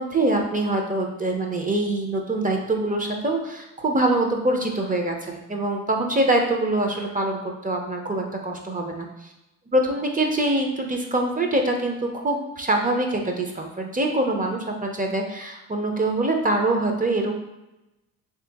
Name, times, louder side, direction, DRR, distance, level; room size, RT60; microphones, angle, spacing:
voice 1, 0.0-9.3 9.7-17.3, right 2 dB, 20° right, 2 dB, 0.7 m, -24 dB
3.4 x 2.9 x 3.5 m, 0.95 s
supercardioid pair, 70°, 39 cm